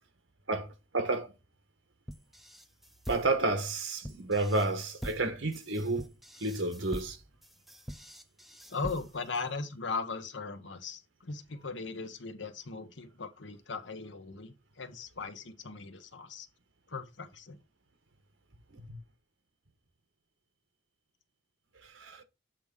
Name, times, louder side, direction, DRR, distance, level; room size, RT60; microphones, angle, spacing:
voice 1, 0.9-1.3 3.1-6.1 6.4-7.2 18.8-19.0 21.9-22.2, right 2 dB, 85° right, 1.5 m, -30 dB
sound 1, 2.1-9.4, equal, ahead, 0.7 m, -44 dB
voice 2, 8.7-16.5 16.9-17.6, left 4 dB, 70° left, 1.1 m, -38 dB
7.8 x 3.6 x 5.5 m
head